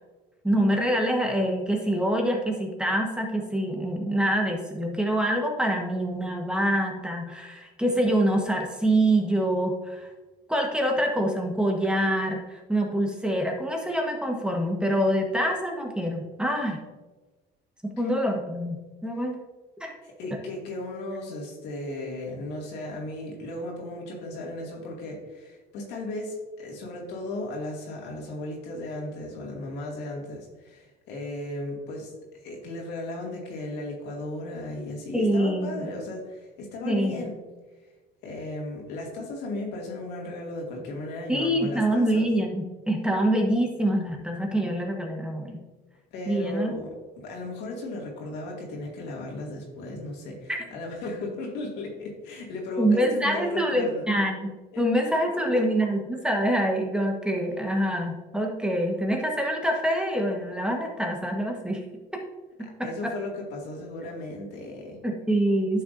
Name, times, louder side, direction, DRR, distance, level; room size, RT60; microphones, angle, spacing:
voice 1, 0.4-10.1 10.5-16.8 17.8-19.4 19.8-19.9 35.1-35.9 36.8-37.3 41.3-45.6 46.3-46.7 50.5-50.6 52.8-61.8 62.1-62.2 62.6-63.1 65.0-65.8, right 1 dB, 5° right, 1 dB, 1.3 m, -25 dB
voice 2, 20.0-32.1 32.4-37.3 38.2-42.2 46.1-46.9 47.2-54.1 54.7-54.8 62.8-65.0, left 2 dB, 90° left, -1 dB, 2.3 m, -35 dB
10.5 x 6.5 x 2.6 m, 1.2 s
cardioid pair, 110°, 17 cm